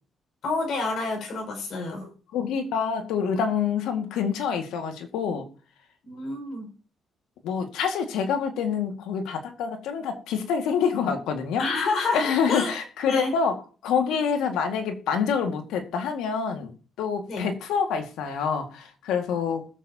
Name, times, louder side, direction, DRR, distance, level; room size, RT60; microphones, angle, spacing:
voice 1, 0.4-2.1 6.0-6.7 11.6-12.7 13.0-13.4 17.3-17.5, left 3 dB, 70° left, 2 dB, 5.6 m, -29 dB
voice 2, 2.3-5.5 7.4-11.6 12.1-16.7 17.0-19.7, left 6 dB, 90° left, 5 dB, 2.0 m, -27 dB
20.5 x 7.2 x 2.9 m, 0.37 s
cardioid pair, 90°, 0 cm